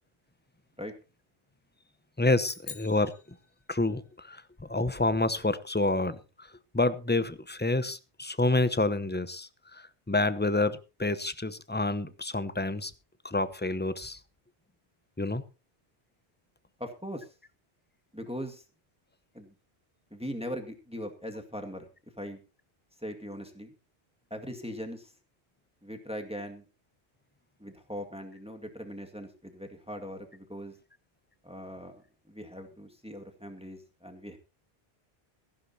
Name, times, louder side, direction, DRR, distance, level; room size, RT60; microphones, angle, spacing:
voice 1, 2.2-3.1 3.7-6.5 6.7-12.9 13.2-14.2 15.2-15.4, left 2 dB, 10° left, 13 dB, 0.7 m, -28 dB
sound 1, 2.4-4.1, left 6 dB, 85° left, 1.6 m, -46 dB
voice 2, 16.8-17.3 18.1-18.6 19.3-19.5 20.1-21.9 22.2-22.4 23.0-23.7 24.3-25.1 25.8-26.6 27.6-30.7 31.4-34.4, equal, 5° right, 4 dB, 1.9 m, -40 dB
16.5 x 15.0 x 2.8 m, 0.30 s
omnidirectional pair, 1.1 m